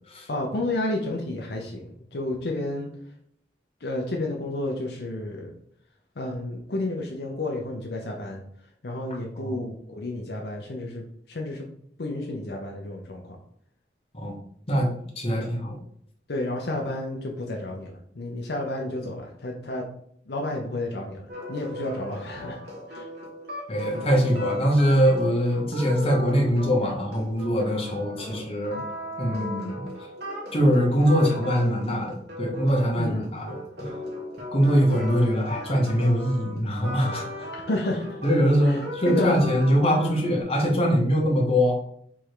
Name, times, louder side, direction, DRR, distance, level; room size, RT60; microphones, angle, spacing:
voice 1, 0.3-2.9 3.8-5.5 6.2-8.4 8.8-11.7 12.0-13.4 15.4-15.5 16.3-19.8 20.3-22.6 22.9-23.1 33.0-33.3 37.5-38.2 38.7-38.8 39.1-39.4, left 2 dB, 65° left, 0 dB, 0.6 m, -31 dB
voice 2, 15.2-15.8 23.7-28.8 29.2-29.8 30.5-33.5 33.8-33.9 34.5-37.5 38.2-41.7, equal, 35° left, -1 dB, 1.1 m, -22 dB
sound 1, 21.3-40.4, equal, 65° right, 1.4 m, -37 dB
3.6 x 3.2 x 4.7 m, 0.67 s
head